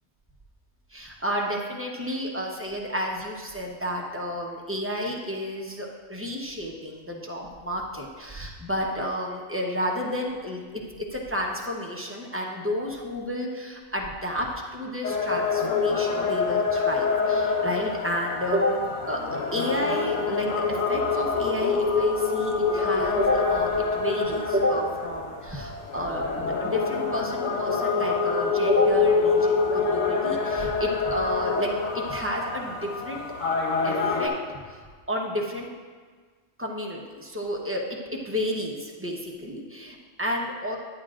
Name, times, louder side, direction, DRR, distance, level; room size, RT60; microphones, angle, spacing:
voice 1, 0.9-19.2 19.5-33.2 33.8-34.3 34.7-35.7 36.6-37.8 38.2-40.8, equal, 10° right, -2 dB, 0.8 m, -30 dB
sound 1, 15.0-34.3, left 4 dB, 90° left, 1.3 m, -26 dB
10.0 x 9.7 x 2.5 m, 1.5 s
omnidirectional pair, 1.3 m